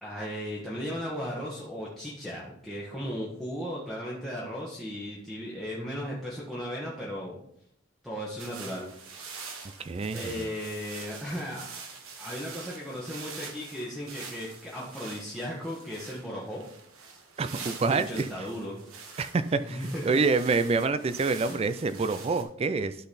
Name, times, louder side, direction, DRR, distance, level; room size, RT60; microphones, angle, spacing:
voice 1, 0.0-7.3 8.0-9.3 10.1-11.7 12.2-16.6 17.8-18.8 19.6-20.0 21.5-21.7, equal, ahead, -7 dB, 1.2 m, -36 dB
sound 1, 8.4-22.4, right 5 dB, 90° right, 1.4 m, -45 dB
voice 2, 9.8-10.5 17.4-18.5 19.2-23.0, right 4 dB, 30° right, 12 dB, 0.3 m, -27 dB
11.5 x 4.0 x 4.1 m, 0.71 s
head